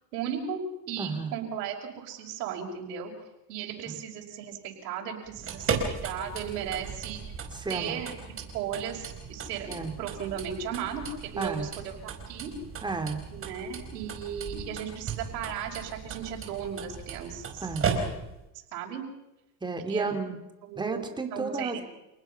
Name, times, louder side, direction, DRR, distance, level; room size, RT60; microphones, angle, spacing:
voice 1, 0.1-3.1 3.5-7.2 7.7-8.1 8.5-12.5 13.3-17.7 18.7-19.0 19.9-20.1 20.7-21.0 21.3-21.7, right 8 dB, 90° right, -1 dB, 5.6 m, -36 dB
voice 2, 1.0-1.3 7.5-8.0 9.7-9.9 11.4-11.7 12.8-13.2 17.6-18.0 19.6-20.4 20.7-21.8, right 4 dB, 10° right, 5 dB, 2.7 m, -32 dB
sound 1, 5.3-18.5, right 5 dB, 25° right, 4.9 m, -36 dB
28.5 x 20.0 x 5.8 m, 0.94 s
supercardioid pair, 135°, 48 cm